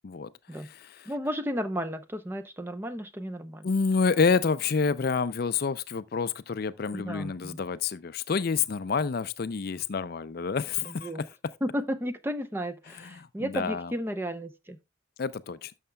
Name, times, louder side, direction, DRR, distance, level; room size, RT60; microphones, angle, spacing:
voice 1, 0.0-1.1 3.6-11.3 12.9-13.9 15.2-15.7, left 5 dB, 50° left, 0.4 m, -28 dB
voice 2, 1.1-3.7 6.9-7.6 10.9-11.3 11.6-14.8, equal, 10° right, 0.5 m, -33 dB
12.5 x 6.5 x 2.2 m
head